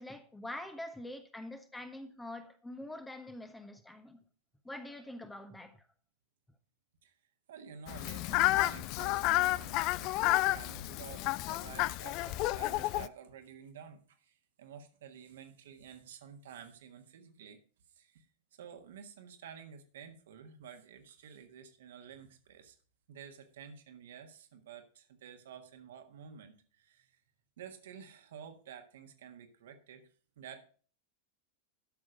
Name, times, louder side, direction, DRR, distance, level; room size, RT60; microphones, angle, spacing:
voice 1, 0.0-4.2 4.6-5.9, left 1 dB, 10° left, 1.1 m, -45 dB
voice 2, 7.5-17.6 17.9-18.2 18.5-22.8 23.1-27.2 27.6-30.1 30.4-30.6, right 8 dB, 60° right, 1.5 m, -51 dB
Fowl, 7.9-13.1, left 18 dB, 40° left, 0.4 m, -31 dB
12.0 x 6.3 x 5.2 m
figure-of-eight pair, 90°, 0 cm